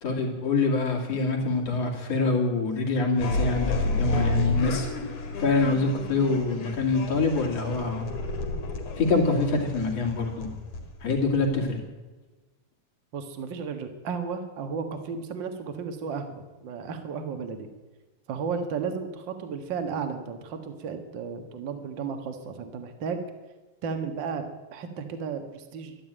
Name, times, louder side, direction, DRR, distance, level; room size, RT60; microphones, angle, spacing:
voice 1, 0.0-4.9 5.4-8.1 9.0-10.5 11.0-11.8, left 3 dB, 55° left, -1 dB, 3.5 m, -25 dB
sound 1, 3.1-11.8, left 2 dB, 80° left, 3.6 m, -31 dB
voice 2, 13.1-17.7 18.3-23.2 23.8-26.0, right 5 dB, 45° right, 7 dB, 1.7 m, -34 dB
12.5 x 12.0 x 9.0 m, 1.2 s
omnidirectional pair, 3.5 m